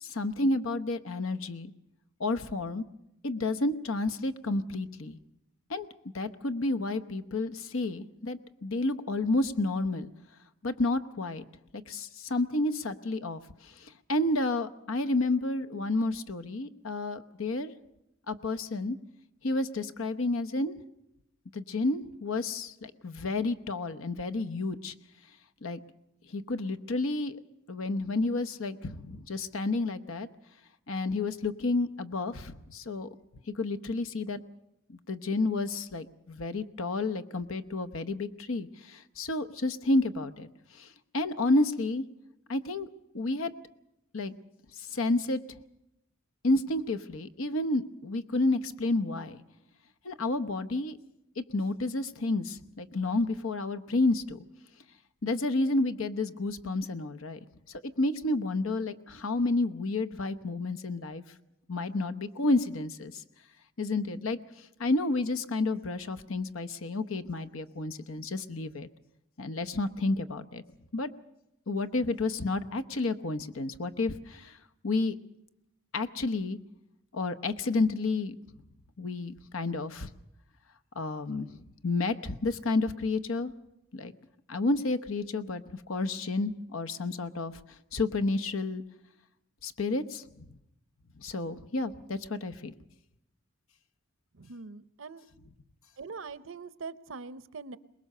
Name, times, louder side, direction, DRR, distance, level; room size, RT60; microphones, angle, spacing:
voice 1, 0.0-1.7 2.2-2.8 3.2-5.2 5.7-5.9 6.1-10.1 10.6-11.4 11.9-17.7 18.3-19.0 19.4-20.8 21.5-24.9 25.6-25.8 26.3-27.4 27.7-30.3 30.9-33.1 33.5-34.4 34.9-40.5 40.7-40.9 41.1-42.0 42.5-42.9 43.1-43.5 44.1-44.3 44.8-45.4 46.4-49.4 50.0-51.0 51.4-54.4 55.2-57.4 57.7-61.2 61.7-63.2 63.8-64.4 64.8-68.9 69.4-70.6 70.9-71.1 71.7-74.6 74.8-75.2 75.9-76.6 77.1-78.3 79.0-80.1 81.0-81.5 81.8-83.5 83.9-84.1 84.5-85.6 85.9-87.5 87.9-88.8 89.6-90.2 91.2-92.7, left 2 dB, 75° left, 9 dB, 0.9 m, -30 dB
voice 2, 94.3-95.2 96.0-97.8, right 4 dB, 65° right, 15 dB, 0.7 m, -42 dB
23.0 x 20.5 x 6.6 m, 0.86 s
head